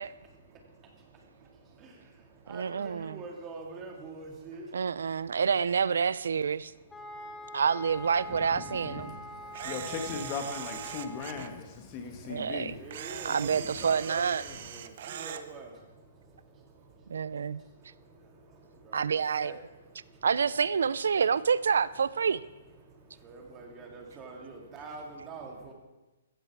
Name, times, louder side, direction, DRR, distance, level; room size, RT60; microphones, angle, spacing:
voice 1, 0.0-5.4 6.2-7.7 8.3-9.9 10.9-21.4 21.7-25.7, right 3 dB, 15° right, 2.1 m, -48 dB
voice 2, 2.5-3.2 4.7-6.7 7.5-9.1 12.3-12.7 13.2-14.4 17.1-17.6 18.9-19.5 20.2-22.4, right 6 dB, 85° right, 0.5 m, -28 dB
sound 1, 6.9-11.6, equal, 5° left, 1.1 m, -44 dB
voice 3, 8.3-12.8, left 5 dB, 25° left, 1.5 m, -38 dB
Camera, 9.5-11.5 12.9-15.4, right 9 dB, 40° right, 0.8 m, -41 dB
15.0 x 14.5 x 4.7 m
hypercardioid pair, 175°, 0 cm